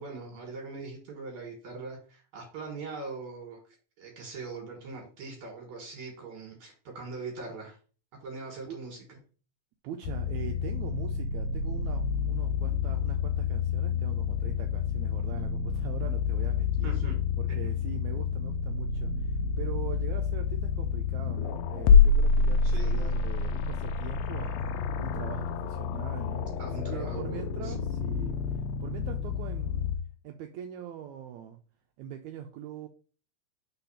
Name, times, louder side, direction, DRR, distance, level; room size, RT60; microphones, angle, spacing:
voice 1, 0.0-3.6 4.0-7.8 8.2-9.2 16.8-17.2 17.6-17.7 22.6-23.1 26.6-27.4 27.6-27.7, right 3 dB, 65° right, 2.7 m, -41 dB
voice 2, 9.8-16.9 17.4-24.6 25.0-29.9 30.2-31.6 32.0-32.9, right 10 dB, 80° right, 1.7 m, -42 dB
sound 1, 10.0-30.0, left 5 dB, 85° left, 1.5 m, -28 dB
4.5 x 4.0 x 5.5 m
omnidirectional pair, 3.7 m